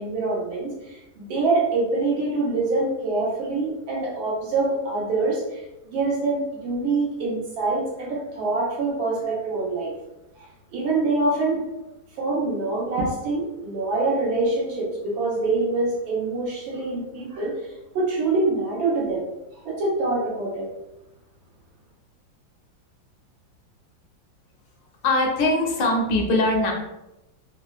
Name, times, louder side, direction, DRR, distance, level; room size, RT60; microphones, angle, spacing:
voice 1, 0.0-9.9 10.4-10.5 10.7-11.6 12.2-17.5 17.9-19.2 19.5-20.7, right 3 dB, 85° right, -4 dB, 1.8 m, -25 dB
voice 2, 25.0-26.7, left 2 dB, 75° left, 0 dB, 1.3 m, -21 dB
4.5 x 2.0 x 2.3 m, 0.94 s
omnidirectional pair, 2.1 m